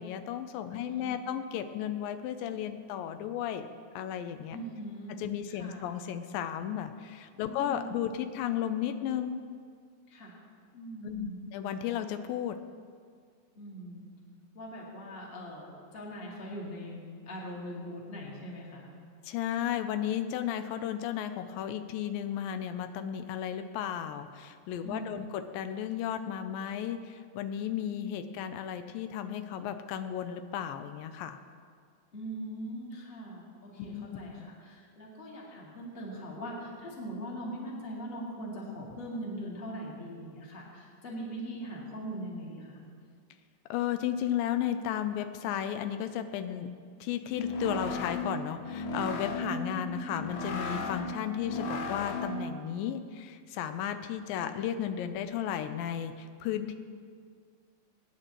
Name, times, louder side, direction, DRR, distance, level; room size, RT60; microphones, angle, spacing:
voice 1, 0.0-3.7 4.0-4.6 5.2-9.4 11.0-12.6 19.2-31.4 33.8-34.5 43.7-46.7 47.0-56.7, left 10 dB, 85° left, 9 dB, 2.3 m, -34 dB
voice 2, 0.7-1.3 4.5-5.1 5.5-5.8 7.5-7.9 8.2-8.3 10.1-10.4 10.7-11.4 13.6-14.1 14.5-17.0 17.3-18.9 24.8-25.2 32.1-42.8 49.2-49.5, equal, 20° left, -4 dB, 1.9 m, -41 dB
sound 1, 47.2-52.5, left 2 dB, 70° left, 2.3 m, -36 dB
24.5 x 9.8 x 3.0 m, 2.1 s
omnidirectional pair, 3.9 m